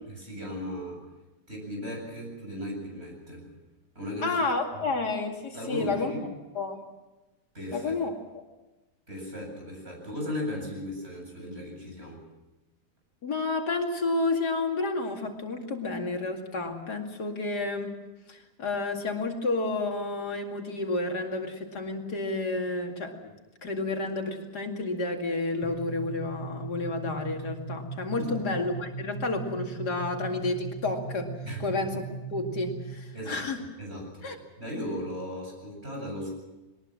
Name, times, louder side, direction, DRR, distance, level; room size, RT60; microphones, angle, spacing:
voice 1, 0.1-1.0 1.5-3.5 3.9-4.4 5.5-6.2 7.5-7.9 9.1-12.2 28.1-28.4 31.4-31.6 33.1-34.3 34.6-36.3, left 1 dB, 40° right, 0 dB, 8.3 m, -36 dB
voice 2, 4.2-6.1 6.5-6.8 7.7-8.1 13.2-18.0 18.3-23.2 23.6-31.3 31.6-32.1 32.3-33.6 34.2-34.4, left 3 dB, 80° left, 3 dB, 3.0 m, -30 dB
sound 1, 25.6-33.2, right 3 dB, 75° right, 2.5 m, -39 dB
22.0 x 20.0 x 7.6 m, 1.1 s
omnidirectional pair, 1.7 m